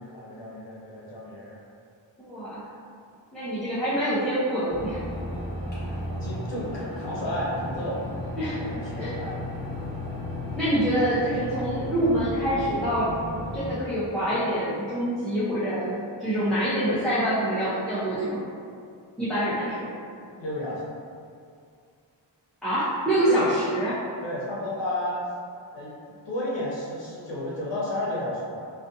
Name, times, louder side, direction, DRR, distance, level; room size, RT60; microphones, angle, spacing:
voice 1, 0.0-1.6 5.7-8.0 8.5-9.3 10.8-10.9 20.3-20.8 23.3-23.5 24.2-25.2 25.7-25.9 26.3-28.6, left 1 dB, 70° left, -5 dB, 0.7 m, -32 dB
voice 2, 2.2-2.6 3.3-5.0 8.4-8.7 9.0-9.1 10.5-13.1 13.5-18.4 19.2-19.9 22.6-24.0, right 1 dB, ahead, -13 dB, 0.5 m, -26 dB
sound 1, 4.7-13.7, equal, 20° left, 0.8 m, -34 dB
2.4 x 2.3 x 2.5 m, 2.3 s
wide cardioid pair, 115°, 45 cm